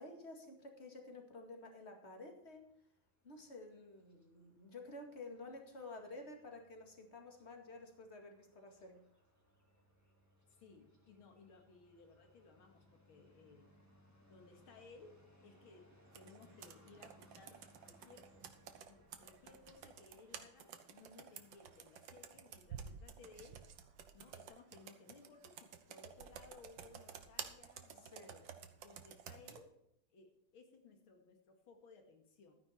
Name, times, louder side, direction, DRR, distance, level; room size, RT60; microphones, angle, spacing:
voice 1, 0.0-2.7 3.2-9.0 21.0-21.3 28.0-28.3, left 2 dB, 30° left, 3 dB, 2.2 m, -52 dB
sound 1, 2.4-21.8, equal, 10° left, 1.8 m, -69 dB
voice 2, 10.6-13.7 14.3-15.9 16.1-18.3 18.9-23.6 24.1-28.5 28.8-29.7 30.1-32.5, left 4 dB, 80° left, 4 dB, 2.7 m, -61 dB
Computer keyboard, 16.1-29.6, right 8 dB, 70° right, 1.7 m, -53 dB
13.5 x 9.7 x 4.4 m, 0.77 s
omnidirectional pair, 2.3 m